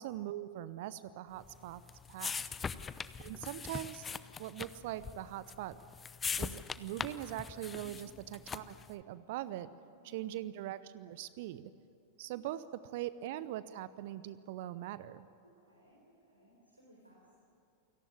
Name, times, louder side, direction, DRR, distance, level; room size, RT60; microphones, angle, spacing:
voice 1, 0.0-1.8 2.1-2.4 3.2-4.1 4.4-5.8 6.4-9.7 10.0-11.7 12.2-15.2, right 13 dB, 50° right, 16 dB, 0.8 m, -42 dB
sound 1, 1.4-8.9, left 5 dB, 20° left, 0.8 m, -41 dB
voice 2, 2.2-2.6 7.8-7.9 9.6-10.3 12.2-12.3 12.8-12.9 15.4-17.3, equal, 85° right, -3 dB, 4.3 m, -63 dB
28.5 x 18.0 x 9.8 m, 2.5 s
figure-of-eight pair, 90°, 0 cm